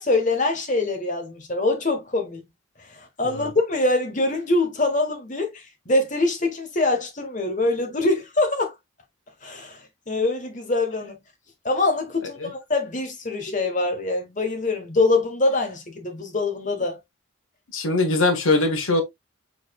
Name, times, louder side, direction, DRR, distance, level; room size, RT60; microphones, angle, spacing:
voice 1, 0.0-2.4 2.8-8.7 9.4-11.2 11.6-17.0, left 2 dB, 40° left, 1.2 m, -24 dB
voice 2, 17.7-19.0, left 2 dB, 85° left, 1.2 m, -21 dB
4.8 x 4.2 x 2.3 m
head